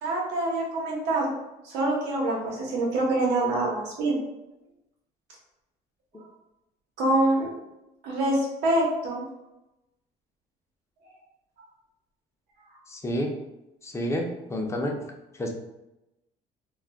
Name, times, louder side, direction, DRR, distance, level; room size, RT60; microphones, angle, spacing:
voice 1, 0.0-1.3 1.6-4.2 7.0-7.5 8.0-9.2, right 1 dB, 85° right, -2 dB, 0.9 m, -25 dB
voice 2, 12.9-13.4 13.8-15.0 15.4-15.5, equal, 15° left, 1 dB, 0.5 m, -29 dB
2.3 x 2.1 x 3.5 m, 0.96 s
cardioid pair, 110°, 17 cm